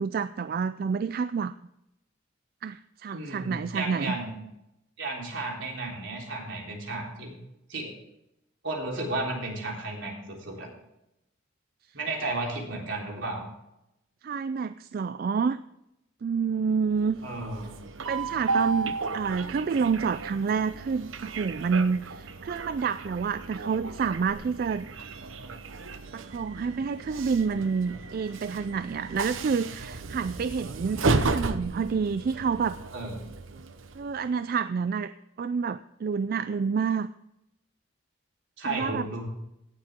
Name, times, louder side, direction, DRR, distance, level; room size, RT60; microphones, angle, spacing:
voice 1, 0.0-1.5 2.6-4.1 14.2-15.6 16.2-17.2 18.1-24.9 26.1-31.0 31.3-32.8 33.9-35.1 35.4-37.1 38.7-39.1, right 5 dB, 50° right, 13 dB, 0.3 m, -28 dB
voice 2, 3.1-4.3 5.0-7.4 7.7-7.9 8.6-10.7 11.9-13.5 17.2-17.7 32.9-33.2 38.6-39.3, right 2 dB, 70° right, -1 dB, 3.7 m, -33 dB
Train, 17.0-34.3, right 3 dB, 90° right, 0.8 m, -34 dB
17.5 x 7.5 x 3.6 m, 0.85 s
head